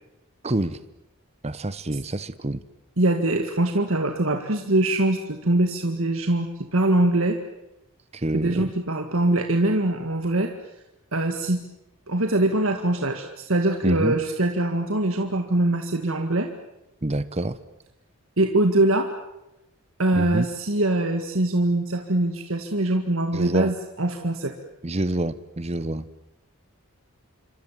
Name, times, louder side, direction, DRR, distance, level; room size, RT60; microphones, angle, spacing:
voice 1, 0.4-0.8 1.4-2.6 8.1-8.7 13.8-14.2 17.0-17.6 20.2-20.5 23.3-23.7 24.8-26.0, right 1 dB, 30° right, 14 dB, 0.9 m, -27 dB
voice 2, 3.0-7.4 8.3-10.5 11.1-11.6 12.1-16.5 18.4-19.1 20.0-24.5, right 1 dB, 65° right, 4 dB, 1.9 m, -23 dB
28.0 x 25.0 x 7.5 m, 0.90 s
head